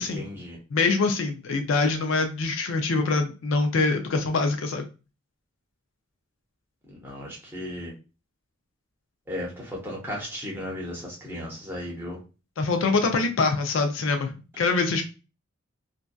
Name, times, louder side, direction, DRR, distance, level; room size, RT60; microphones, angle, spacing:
voice 1, 0.1-0.6 7.0-7.9 9.3-12.2, left 1 dB, 10° right, -4 dB, 0.8 m, -35 dB
voice 2, 0.7-4.9 12.6-15.0, left 3 dB, 65° left, 5 dB, 0.4 m, -24 dB
2.6 x 2.2 x 2.2 m, 0.32 s
head